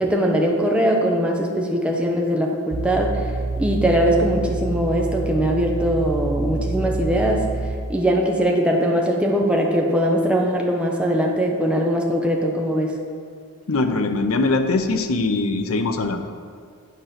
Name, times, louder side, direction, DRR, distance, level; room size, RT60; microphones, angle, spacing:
voice 1, 0.0-3.3 3.6-7.4 7.9-12.9, equal, 5° right, 0 dB, 0.8 m, -21 dB
sound 1, 2.7-7.8, right 3 dB, 30° right, 0.4 m, -27 dB
voice 2, 13.7-16.3, left 3 dB, 70° left, 7 dB, 0.7 m, -22 dB
9.2 x 5.0 x 5.8 m, 2.1 s
head